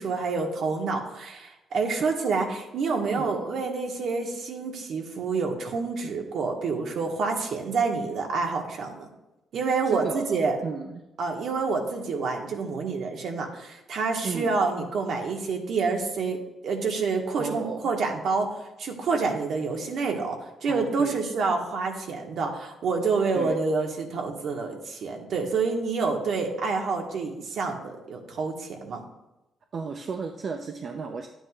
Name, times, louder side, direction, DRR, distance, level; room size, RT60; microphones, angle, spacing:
voice 1, 0.0-9.1 9.5-10.6 11.2-16.4 16.6-29.0, right 4 dB, 65° right, 2 dB, 1.6 m, -28 dB
voice 2, 3.2-3.6 9.9-11.0 14.2-14.5 17.4-17.8 20.7-21.2 23.3-23.6 29.7-31.3, right 5 dB, 50° right, 4 dB, 0.7 m, -34 dB
11.0 x 9.0 x 2.5 m, 0.98 s
cardioid pair, 90°, 0 cm